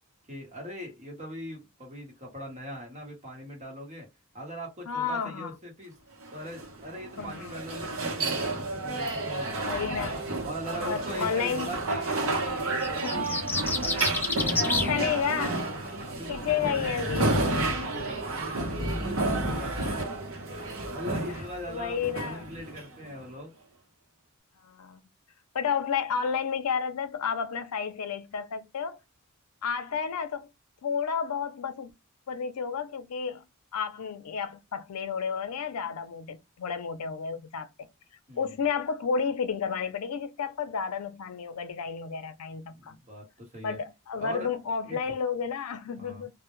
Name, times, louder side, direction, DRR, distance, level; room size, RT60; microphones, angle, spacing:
voice 1, 0.3-4.1 4.3-6.0 6.3-9.8 10.4-13.4 13.8-20.3 20.9-23.5 38.3-38.5 42.7-43.8 44.2-44.5 44.8-45.0 46.0-46.3, equal, 30° right, 1.0 m, -41 dB
voice 2, 4.9-5.5 7.2-7.6 9.7-10.2 10.8-11.7 13.0-13.4 14.9-15.6 16.3-17.4 21.7-22.5 24.6-25.0 25.5-29.0 29.6-30.5 30.8-31.9 32.3-33.4 33.7-37.9 38.4-43.0 43.6-46.3, left 6 dB, 75° left, 0.5 m, -31 dB
sound 1, 6.2-23.2, right 2 dB, 65° right, 0.7 m, -31 dB
sound 2, 12.8-14.9, left 3 dB, 10° left, 0.3 m, -29 dB
2.1 x 2.0 x 3.0 m
head